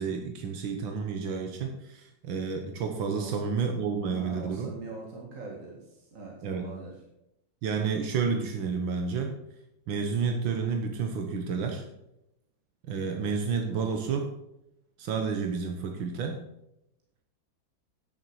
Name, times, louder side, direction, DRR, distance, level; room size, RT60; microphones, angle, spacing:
voice 1, 0.0-4.7 6.4-6.7 7.6-9.4 9.9-11.9 12.9-14.3 15.0-16.4, right 5 dB, 85° right, 4 dB, 1.9 m, -30 dB
voice 2, 4.1-6.9, right 3 dB, 45° right, -2 dB, 2.2 m, -42 dB
10.0 x 6.9 x 6.3 m, 0.86 s
omnidirectional pair, 2.1 m